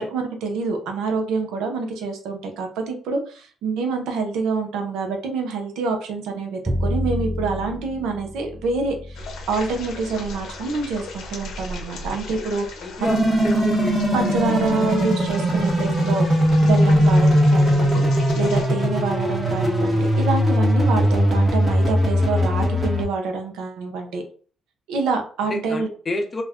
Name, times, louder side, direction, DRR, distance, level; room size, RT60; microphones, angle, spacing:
voice 1, 0.0-13.3 14.1-16.2 16.6-18.1 18.3-24.2 24.9-25.9, right 4 dB, 90° right, 4 dB, 0.6 m, -26 dB
Bowed string instrument, 6.6-12.8, left 1 dB, 5° right, 0.4 m, -31 dB
sound 1, 9.2-18.7, left 2 dB, 80° left, 0.6 m, -37 dB
voice 2, 12.8-14.8 19.9-20.3 25.5-26.4, left 1 dB, 30° left, 3 dB, 0.6 m, -30 dB
sound 2, 13.0-23.0, equal, 20° right, 0.8 m, -19 dB
2.4 x 2.1 x 3.5 m, 0.42 s
cardioid pair, 90°, 0 cm